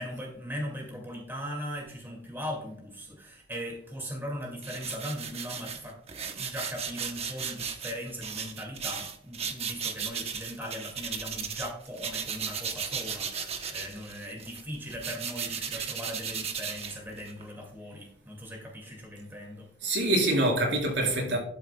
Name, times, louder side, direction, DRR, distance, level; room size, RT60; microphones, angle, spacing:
voice 1, 0.0-19.7, equal, 10° right, 2.1 m, -39 dB
sound 1, 4.6-11.7 12.0-17.4, right 6 dB, 35° right, 0.9 m, -36 dB
voice 2, 15.7-16.3 19.8-21.4, right 1 dB, 70° right, 4.0 m, -26 dB
11.5 x 9.2 x 2.2 m
head